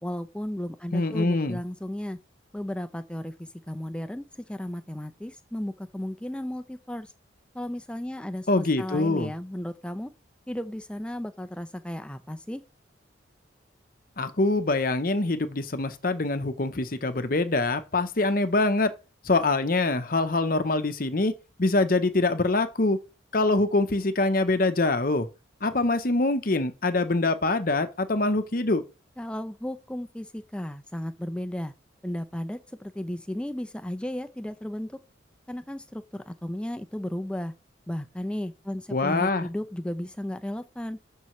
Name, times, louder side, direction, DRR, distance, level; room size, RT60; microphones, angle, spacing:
voice 1, 0.0-2.2 2.5-7.1 7.5-10.1 10.5-12.6 29.2-31.7 32.0-35.0 35.5-37.5 37.9-41.0, left 1 dB, 5° left, 0.5 m, -34 dB
voice 2, 0.9-1.6 8.5-9.3 14.2-18.9 19.2-21.3 21.6-23.0 23.3-25.3 25.6-28.8 38.9-39.5, left 2 dB, 45° left, 0.8 m, -24 dB
12.5 x 5.5 x 3.1 m
head